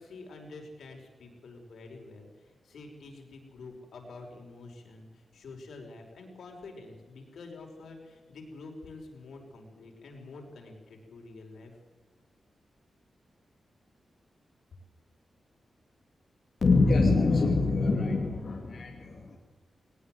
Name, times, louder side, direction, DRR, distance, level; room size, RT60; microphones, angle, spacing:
voice 1, 0.0-11.7, left 3 dB, 80° left, 2 dB, 5.5 m, -47 dB
voice 2, 16.6-19.4, left 3 dB, 45° left, 0 dB, 2.7 m, -25 dB
20.5 x 19.5 x 8.0 m, 1.4 s
wide cardioid pair, 160°, 0 cm